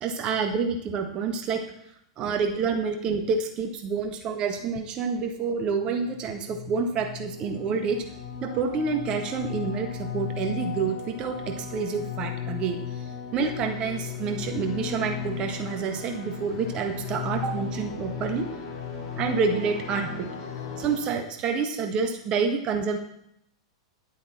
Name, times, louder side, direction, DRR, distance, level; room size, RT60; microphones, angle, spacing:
voice 1, 0.0-1.6 2.2-8.0 8.4-13.0 13.3-18.4 19.2-20.3 20.8-23.0, right 5 dB, 30° right, 4 dB, 1.5 m, -28 dB
sound 1, 6.0-21.0, left 7 dB, 50° left, 3.2 m, -36 dB
10.5 x 8.3 x 4.3 m, 0.76 s
figure-of-eight pair, 95°, 3 cm